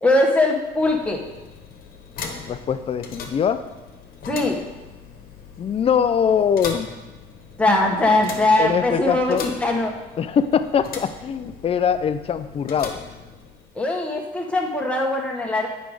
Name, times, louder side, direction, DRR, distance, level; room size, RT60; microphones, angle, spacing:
voice 1, 0.0-1.2 4.3-4.6 7.6-9.9 13.7-15.7, left 2 dB, 5° left, 0 dB, 1.2 m, -21 dB
sound 1, 0.6-13.9, left 5 dB, 60° left, 1.2 m, -39 dB
voice 2, 2.5-3.6 5.6-6.9 8.6-9.4 10.2-13.0, left 7 dB, 35° left, 11 dB, 0.5 m, -22 dB
8.1 x 5.1 x 4.8 m, 1.1 s
cardioid pair, 110°, 17 cm